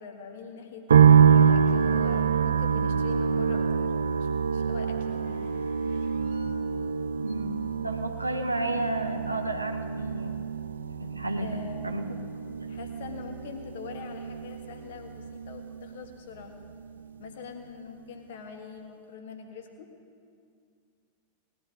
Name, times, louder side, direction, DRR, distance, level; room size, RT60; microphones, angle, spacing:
voice 1, 0.0-3.9 4.2-6.6 11.4-12.0 12.7-16.5 17.2-19.9, left 5 dB, 55° left, 4 dB, 1.6 m, -44 dB
sound 1, 0.9-16.1 16.4-17.3, right 7 dB, 70° right, 0.4 m, -26 dB
voice 2, 7.8-10.4 11.0-11.6 11.8-12.1, right 1 dB, 85° right, 6 dB, 0.9 m, -32 dB
19.0 x 12.0 x 3.8 m, 2.3 s
figure-of-eight pair, 90°, 0 cm